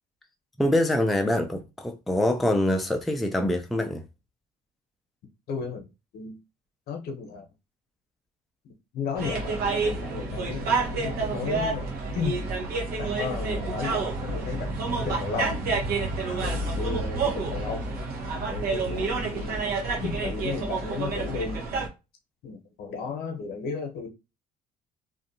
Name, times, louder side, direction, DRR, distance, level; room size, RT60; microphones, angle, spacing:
voice 1, 0.6-4.0, left 1 dB, ahead, 0.3 m, -24 dB
voice 2, 5.5-5.9 6.1-6.4 6.9-7.5 8.6-12.5 13.0-15.7 16.2-17.9 18.5-21.7 22.4-24.1, left 5 dB, 65° left, 0.8 m, -34 dB
sound 1, 9.2-21.9, right 3 dB, 65° right, 1.0 m, -29 dB
2.6 x 2.4 x 2.6 m
cardioid pair, 110°, 17 cm